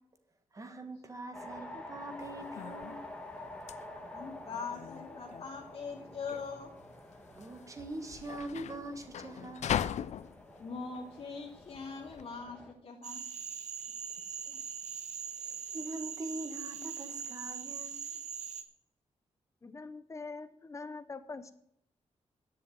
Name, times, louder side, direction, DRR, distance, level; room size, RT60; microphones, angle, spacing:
voice 1, 0.5-3.0 7.3-9.8 14.3-14.7 15.4-17.9, right 2 dB, 25° right, 7 dB, 1.5 m, -43 dB
sound 1, 1.3-12.7, left 1 dB, 10° left, 1.4 m, -49 dB
sound 2, 2.2-12.3, left 9 dB, 75° left, 0.5 m, -40 dB
voice 2, 3.9-6.7 10.6-13.2, left 5 dB, 55° left, -2 dB, 2.6 m, -42 dB
Cricket / Frog, 13.0-18.6, right 7 dB, 80° right, 1.2 m, -41 dB
voice 3, 19.6-21.5, left 4 dB, 25° left, 11 dB, 0.8 m, -43 dB
10.5 x 7.1 x 9.2 m, 0.73 s
wide cardioid pair, 175°, 12 cm